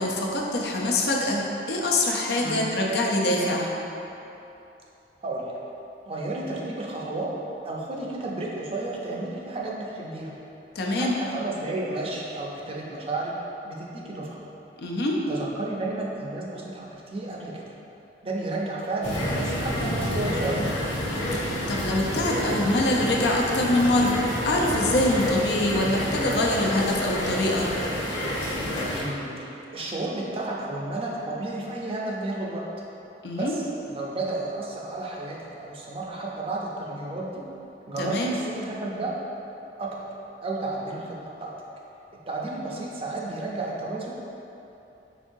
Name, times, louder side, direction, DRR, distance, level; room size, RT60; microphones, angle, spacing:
voice 1, 0.0-3.7 10.7-11.1 14.8-15.2 21.3-24.2 24.4-27.7 33.2-33.5 38.0-38.4, left 1 dB, 65° left, -2 dB, 0.5 m, -24 dB
voice 2, 5.2-5.5 6.1-7.3 7.6-10.3 10.9-13.3 13.6-14.4 15.3-17.7 18.2-20.7 29.0-32.6 33.3-33.5 33.9-37.4 37.9-39.1 39.8-39.9 40.4-41.5 42.3-44.1, right 2 dB, 35° right, -3 dB, 0.5 m, -32 dB
sound 1, 19.0-29.0, left 1 dB, 85° left, 1.0 m, -29 dB
5.1 x 3.6 x 2.6 m, 2.9 s
head